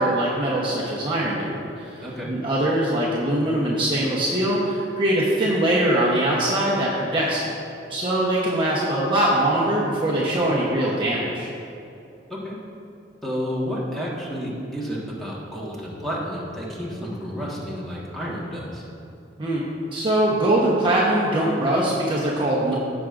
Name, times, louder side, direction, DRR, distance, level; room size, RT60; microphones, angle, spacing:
voice 1, 0.0-1.9 2.3-7.4 7.9-11.5 19.4-22.8, right 1 dB, 25° right, -6 dB, 1.0 m, -22 dB
voice 2, 13.2-18.9, equal, ahead, -7 dB, 1.6 m, -31 dB
16.0 x 6.0 x 2.6 m, 2.6 s
head